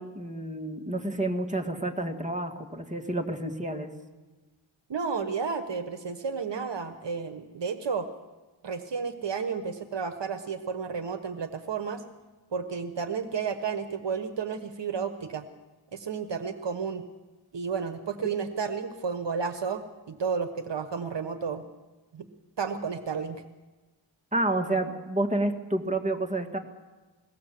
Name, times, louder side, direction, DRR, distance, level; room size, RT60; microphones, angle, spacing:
voice 1, 0.0-3.9 24.3-26.6, right 2 dB, 15° right, 4 dB, 2.3 m, -29 dB
voice 2, 4.9-8.1 8.6-12.0 12.5-15.4 15.9-17.0 17.5-21.6 22.1-22.3 22.6-23.4, right 5 dB, 60° right, 8 dB, 1.3 m, -32 dB
21.5 x 17.5 x 7.6 m, 1.2 s
wide cardioid pair, 90°, 49 cm